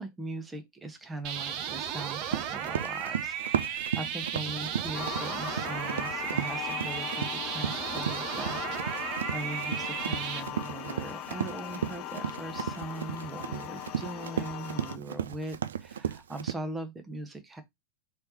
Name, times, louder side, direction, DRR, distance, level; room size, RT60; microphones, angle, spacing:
voice 1, 0.0-17.6, right 2 dB, 15° right, 0.8 m, -40 dB
sound 1, 1.2-10.4, right 8 dB, 40° right, 0.7 m, -35 dB
Run, 2.3-16.5, right 9 dB, 65° right, 0.3 m, -35 dB
sound 2, 4.9-15.0, left 13 dB, 35° left, 0.4 m, -39 dB
4.4 x 3.4 x 2.8 m
figure-of-eight pair, 90°, 0 cm